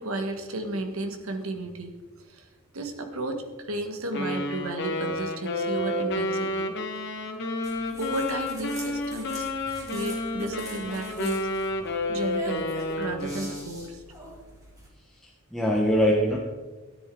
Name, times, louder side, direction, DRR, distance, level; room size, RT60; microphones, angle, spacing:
voice 1, 0.0-1.9 2.3-2.5 2.7-6.7 8.0-11.5 12.1-12.7 13.0-14.0, right 1 dB, 75° right, 6 dB, 1.5 m, -33 dB
Wind instrument woodwind instrument, 4.1-13.7, left 1 dB, 55° left, 1.5 m, -30 dB
sound 1, 7.6-14.9, right 1 dB, 15° right, 2.7 m, -44 dB
voice 2, 15.1-16.4, equal, ahead, -3 dB, 1.0 m, -23 dB
13.5 x 10.0 x 3.8 m, 1.3 s
head